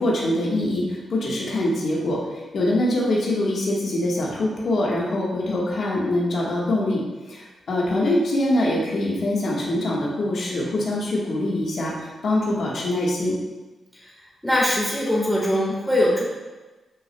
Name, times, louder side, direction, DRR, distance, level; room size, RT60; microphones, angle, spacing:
voice 1, 0.0-13.3, left 1 dB, 60° left, -4 dB, 1.4 m, -24 dB
voice 2, 14.4-16.2, left 1 dB, ahead, -5 dB, 1.5 m, -21 dB
8.5 x 6.0 x 2.2 m, 1.2 s
wide cardioid pair, 165°, 0 cm